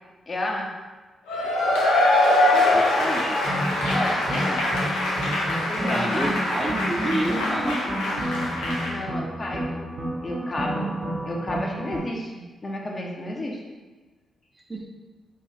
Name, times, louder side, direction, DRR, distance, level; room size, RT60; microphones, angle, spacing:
voice 1, 0.3-0.7 3.9-4.7 5.7-6.4 8.9-9.9 10.2-10.9 11.3-12.3 12.6-13.6, left 1 dB, 40° left, 0 dB, 0.7 m, -31 dB
Cheering / Applause / Crowd, 1.3-8.9, left 1 dB, 90° left, 0.5 m, -23 dB
voice 2, 2.3-3.4 5.9-7.9 14.5-14.9, right 1 dB, 25° right, -1 dB, 0.5 m, -30 dB
sound 1, 3.4-12.0, right 1 dB, 60° right, 0.7 m, -30 dB
3.1 x 2.3 x 3.3 m, 1.3 s
hypercardioid pair, 45°, 0 cm